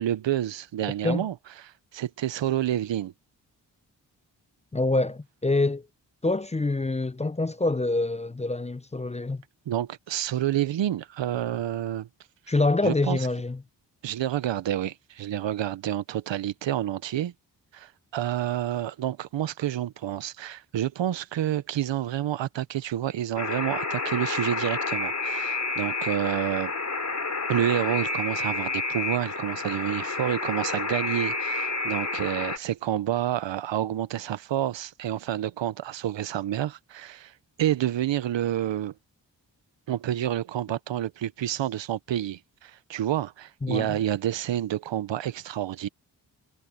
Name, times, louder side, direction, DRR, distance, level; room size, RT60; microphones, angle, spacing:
voice 1, 0.0-1.3 1.6-3.1 9.7-12.1 12.8-13.2 14.0-17.3 17.7-26.7 27.5-37.3 37.6-38.9 39.9-45.9, right 11 dB, 80° right, 1.0 m, -29 dB
voice 2, 4.7-5.9 6.2-9.4 12.5-13.6 43.6-44.0, left 2 dB, 15° left, 0.6 m, -26 dB
Alarm, 23.4-32.6, left 3 dB, 40° left, 3.3 m, -30 dB
supercardioid pair, 40°, 44 cm